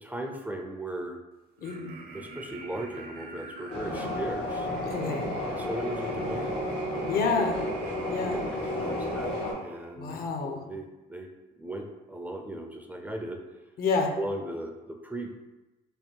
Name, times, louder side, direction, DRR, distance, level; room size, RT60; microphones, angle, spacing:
voice 1, 0.0-1.2 2.1-4.7 5.5-6.7 7.8-10.2 10.4-11.3 11.6-13.4 14.2-15.3, right 1 dB, 10° right, 2 dB, 0.4 m, -37 dB
voice 2, 1.6-1.9 4.9-5.3 7.1-7.6 8.1-8.4 10.0-10.6 13.8-14.1, left 4 dB, 60° left, 3 dB, 0.7 m, -28 dB
sound 1, 1.6-9.9, right 4 dB, 60° right, 0.7 m, -44 dB
sound 2, 3.7-9.5, left 1 dB, 85° left, 1.4 m, -32 dB
3.3 x 2.3 x 4.4 m, 1.1 s
cardioid pair, 110°, 17 cm